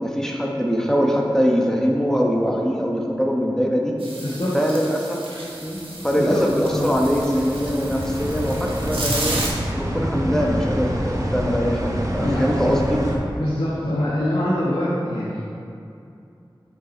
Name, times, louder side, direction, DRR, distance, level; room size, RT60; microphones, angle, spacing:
voice 1, 0.0-4.0 4.5-5.2 5.6-9.4 9.7-13.0, equal, 5° left, -1 dB, 1.0 m, -22 dB
sound 1, 4.0-9.5, right 2 dB, 85° right, 1.2 m, -33 dB
voice 2, 4.2-4.7 6.2-6.9 12.2-12.5 13.4-15.6, left 1 dB, 80° left, -10 dB, 1.3 m, -24 dB
sound 2, 5.6-13.2, equal, 40° right, 1.0 m, -27 dB
6.4 x 5.4 x 4.4 m, 2.6 s
wide cardioid pair, 45°, 9 cm